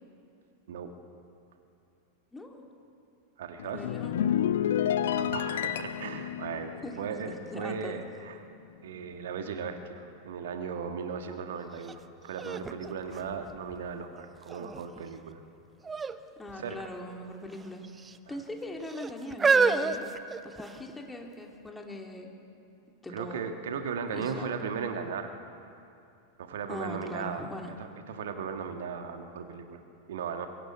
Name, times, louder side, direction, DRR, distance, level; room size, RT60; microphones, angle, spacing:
voice 1, 2.3-2.6 3.7-4.2 6.8-7.0 7.2-8.0 16.4-17.8 18.3-20.1 20.4-22.3 23.0-23.4 24.1-24.5 26.7-27.7, left 1 dB, 10° left, 2 dB, 2.9 m, -41 dB
voice 2, 3.4-3.9 5.1-8.4 8.8-15.4 16.5-16.9 23.1-25.3 26.4-27.5 27.8-29.8 30.1-30.5, right 6 dB, 60° right, 6 dB, 1.7 m, -37 dB
sound 1, 3.6-8.2 8.5-8.8, left 10 dB, 60° left, 0.8 m, -31 dB
sound 2, 11.8-11.9 12.4-13.9 14.5-15.0 15.8-16.2 16.5-16.6 17.5-18.2 18.9-20.9 21.7-21.8, right 4 dB, 15° right, 0.9 m, -28 dB
23.0 x 21.0 x 8.4 m, 2.6 s
figure-of-eight pair, 90°, 0 cm